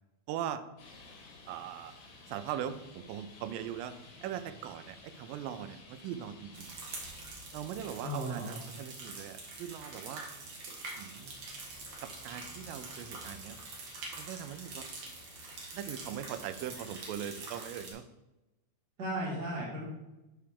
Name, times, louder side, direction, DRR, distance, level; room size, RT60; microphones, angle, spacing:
voice 1, 0.3-0.6 1.5-1.9 2.3-3.9 4.2-6.7 7.5-10.3 11.0-11.4 12.0-13.6 14.2-14.9 15.7-18.0, right 10 dB, 85° right, 10 dB, 2.0 m, -40 dB
Traffic noise roadway noise, 0.8-17.4, left 3 dB, 75° left, 3.3 m, -55 dB
sound 1, 6.5-17.9, right 3 dB, 55° right, 2.1 m, -45 dB
voice 2, 8.0-8.6 19.0-19.9, equal, 35° right, -6 dB, 2.0 m, -35 dB
11.5 x 4.7 x 3.6 m, 1.0 s
omnidirectional pair, 4.5 m